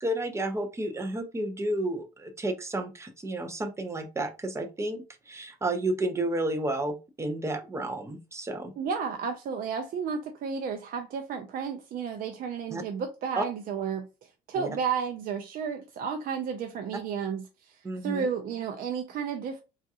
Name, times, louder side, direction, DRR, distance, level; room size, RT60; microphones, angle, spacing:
voice 1, 0.0-8.7 12.7-12.8 13.4-13.5 14.5-14.7 17.8-18.3, right 1 dB, 15° right, 0.6 m, -31 dB
voice 2, 8.8-14.1 14.5-17.4 18.0-19.6, right 6 dB, 60° right, 0.5 m, -32 dB
3.7 x 2.4 x 2.7 m
cardioid pair, 110°, 17 cm